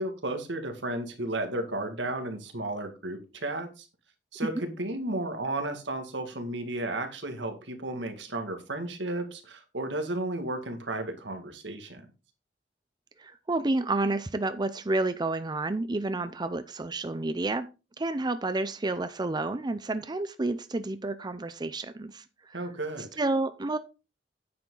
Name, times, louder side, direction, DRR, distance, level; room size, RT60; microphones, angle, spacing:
voice 1, 0.0-3.9 4.3-12.1 22.5-23.1, right 2 dB, 90° right, 6 dB, 2.0 m, -33 dB
voice 2, 13.2-17.7 18.0-22.6 23.2-23.8, right 2 dB, 25° right, 11 dB, 0.5 m, -30 dB
9.5 x 7.3 x 3.9 m, 0.29 s
head